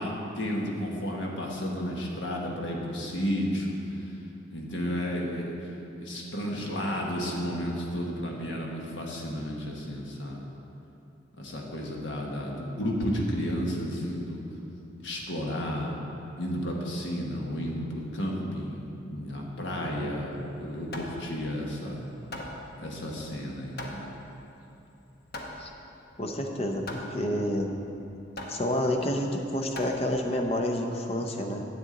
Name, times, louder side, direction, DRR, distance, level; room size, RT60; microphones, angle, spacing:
voice 1, 0.0-3.8 4.5-5.6 6.0-10.4 11.4-14.4 15.0-15.9 16.4-18.8 19.1-22.0 22.8-24.1, equal, 70° left, -1 dB, 1.3 m, -32 dB
Hammer, 20.3-30.5, left 1 dB, 50° left, 0.9 m, -43 dB
voice 2, 26.2-27.7 28.5-31.7, left 1 dB, 30° left, 3 dB, 0.7 m, -29 dB
9.7 x 8.4 x 3.9 m, 2.8 s
head